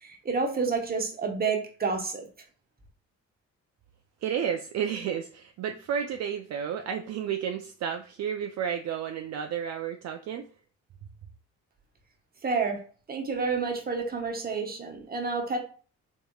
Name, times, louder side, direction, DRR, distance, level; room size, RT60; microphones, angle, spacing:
voice 1, 0.0-2.3 12.4-12.8 13.1-15.6, right 4 dB, 30° right, 3 dB, 1.0 m, -29 dB
voice 2, 4.2-10.4, right 8 dB, 60° right, 5 dB, 0.4 m, -32 dB
4.1 x 3.5 x 2.3 m, 0.40 s
cardioid pair, 90°, 30 cm